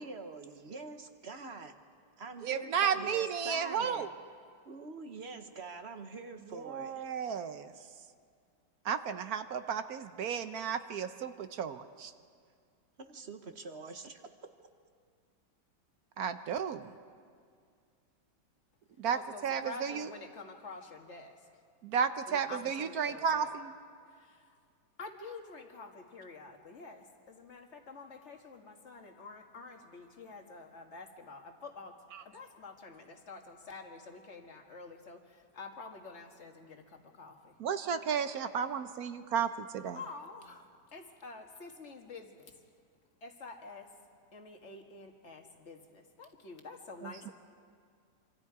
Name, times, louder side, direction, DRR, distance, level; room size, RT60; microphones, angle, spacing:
voice 1, 0.0-1.8 2.2-4.1 4.6-7.1 13.0-14.5, right 3 dB, 40° right, 7 dB, 1.2 m, -45 dB
voice 2, 2.4-4.1 6.5-7.7 8.8-12.1 16.2-16.9 19.0-20.1 21.8-23.7 32.1-32.2 37.6-40.0 47.0-47.3, right 7 dB, 65° right, 10 dB, 1.2 m, -33 dB
voice 3, 19.1-21.4 22.3-23.5 24.1-24.6 25.0-37.5 38.6-38.8 39.9-42.5 43.2-43.9 44.3-47.3, left 3 dB, 40° left, 3 dB, 1.9 m, -48 dB
26.5 x 26.0 x 4.8 m, 2.1 s
omnidirectional pair, 1.9 m